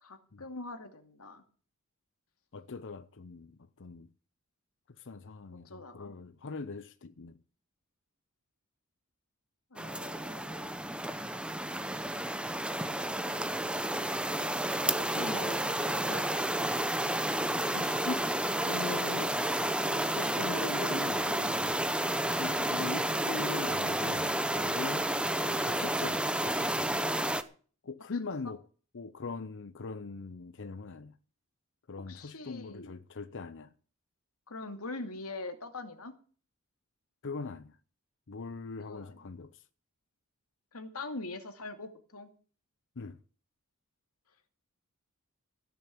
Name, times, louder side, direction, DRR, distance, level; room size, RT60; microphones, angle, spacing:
voice 1, 0.0-1.4 5.6-6.1 9.7-10.8 14.8-16.3 28.4-28.5 32.1-32.9 34.5-36.1 38.8-39.3 40.7-42.3, left 2 dB, 85° left, 2.4 m, -43 dB
voice 2, 2.5-4.1 5.0-7.4 17.6-18.2 18.6-21.9 22.3-25.1 25.5-27.0 27.8-28.6 28.9-31.2 31.9-33.7 37.2-37.8 38.3-39.6 43.0-43.2, left 4 dB, 60° left, 0.7 m, -41 dB
sound 1, 9.8-27.4, right 1 dB, 5° right, 0.9 m, -31 dB
16.5 x 7.1 x 8.6 m
head